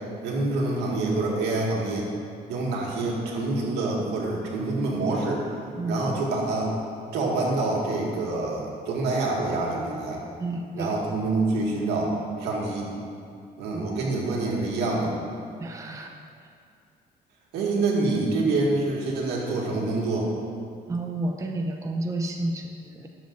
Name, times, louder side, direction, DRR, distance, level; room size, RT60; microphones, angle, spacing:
voice 1, 0.2-2.1 2.5-5.5 5.9-6.7 7.1-10.2 10.8-12.1 12.4-12.9 13.6-15.1 17.5-20.3, right 2 dB, 85° right, -3 dB, 1.8 m, -26 dB
voice 2, 5.8-6.1 10.4-11.0 13.7-14.1 15.6-16.2 16.4-16.5 20.9-23.1, right 2 dB, 20° right, 3 dB, 0.6 m, -31 dB
12.0 x 7.3 x 2.5 m, 2.4 s
cardioid pair, 110°, 17 cm